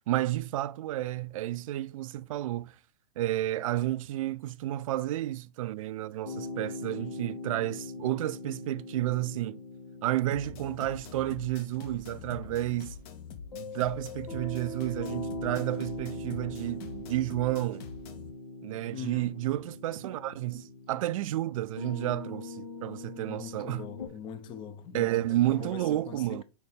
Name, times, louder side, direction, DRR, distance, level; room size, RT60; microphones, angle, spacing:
voice 1, 0.1-2.7 3.2-9.6 10.0-13.0 13.5-17.9 18.6-23.9 24.9-26.4, right 14 dB, 55° right, 0.4 m, -31 dB
sound 1, 6.2-24.1, left 1 dB, 85° left, 3.2 m, -42 dB
sound 2, 10.3-18.3, left 7 dB, 40° left, 1.0 m, -45 dB
voice 2, 18.9-19.3 23.3-26.4, left 8 dB, 25° left, 0.6 m, -42 dB
4.6 x 4.1 x 5.1 m
hypercardioid pair, 135°, 20 cm